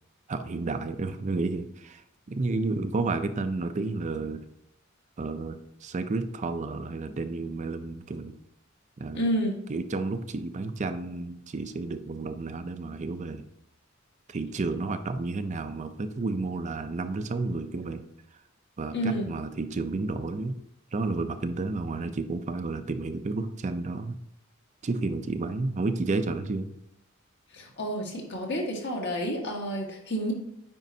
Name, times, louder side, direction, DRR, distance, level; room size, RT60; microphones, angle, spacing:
voice 1, 0.3-4.4 5.2-8.3 9.0-9.3 9.7-13.4 14.3-18.0 18.8-20.6 20.9-24.2 24.8-26.8, right 3 dB, 35° right, 9 dB, 0.5 m, -31 dB
voice 2, 9.1-9.6 18.9-19.3 27.5-30.3, equal, 60° left, 0 dB, 1.5 m, -29 dB
9.1 x 5.2 x 2.7 m, 0.80 s
head